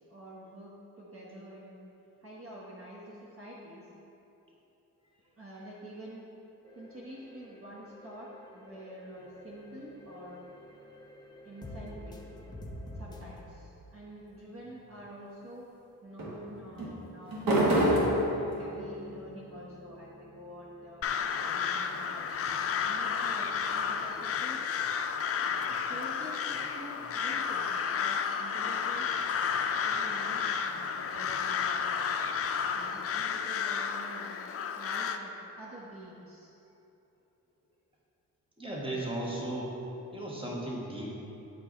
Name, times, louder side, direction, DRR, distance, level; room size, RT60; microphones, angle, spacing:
voice 1, 0.1-1.8 2.2-3.9 5.4-6.2 6.7-10.4 11.4-12.2 12.9-15.7 16.0-18.2 18.5-21.0 21.4-24.8 25.7-29.1 29.5-31.9 32.7-34.4 34.7-36.5, equal, 40° right, -5 dB, 1.1 m, -47 dB
sound 1, 6.6-13.5, left 1 dB, 10° left, 0.9 m, -48 dB
sound 2, 9.1-11.0 14.6-15.1 16.2-22.9 24.7-27.8, right 1 dB, 70° right, 1.5 m, -34 dB
Crow, 21.0-35.2, left 6 dB, 45° left, 0.4 m, -32 dB
voice 2, 23.6-24.1 38.6-39.7 40.1-41.1, right 1 dB, 15° right, -4 dB, 1.5 m, -36 dB
8.3 x 4.7 x 3.9 m, 2.9 s
cardioid pair, 75°, 35 cm